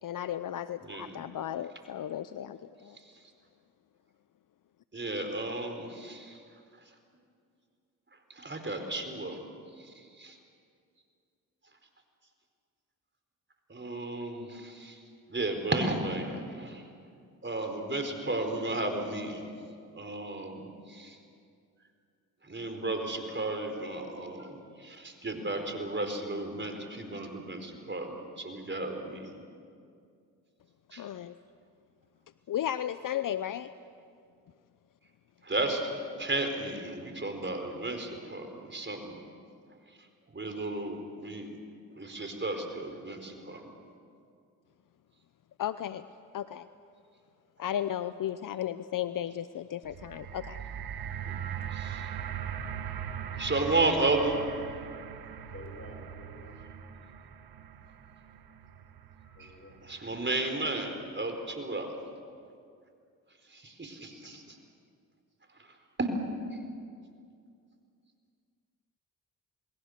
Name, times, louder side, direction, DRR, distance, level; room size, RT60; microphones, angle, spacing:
voice 1, 0.0-3.0 31.0-31.4 32.5-33.7 45.6-46.1 46.3-46.7 47.6-50.6, left 11 dB, 55° left, 13 dB, 0.7 m, -34 dB
voice 2, 4.9-6.4 8.3-10.4 13.7-15.0 15.3-16.8 17.4-19.5 19.9-21.2 22.4-29.4 30.9-31.1 35.4-39.2 40.3-41.5 42.0-43.7 51.3-52.1 53.3-54.4 59.4-59.5 59.8-62.0 63.5-64.6 65.6-65.7 66.0-66.1, right 2 dB, 30° right, 5 dB, 4.6 m, -33 dB
sound 1, 49.8-60.1 60.8-60.9, right 8 dB, 70° right, 1.4 m, -40 dB
voice 3, 55.2-56.6 59.2-59.8, left 2 dB, 35° left, 3 dB, 6.4 m, -50 dB
28.0 x 21.0 x 6.7 m, 2.3 s
supercardioid pair, 55°, 38 cm